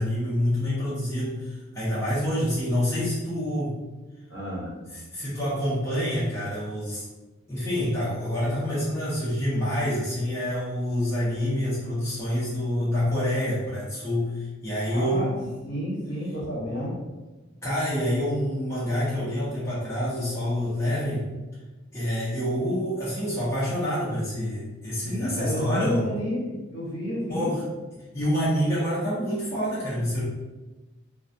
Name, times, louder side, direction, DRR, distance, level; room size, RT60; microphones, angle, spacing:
voice 1, 0.0-3.8 4.9-7.1 7.5-15.5 17.6-21.3 21.9-26.1 27.3-27.6 28.1-30.2, equal, 15° left, -10 dB, 0.6 m, -27 dB
voice 2, 4.3-4.7 14.9-15.3 15.7-17.0 25.0-27.5, equal, 65° left, -6 dB, 1.0 m, -31 dB
2.2 x 2.2 x 2.6 m, 1.2 s
head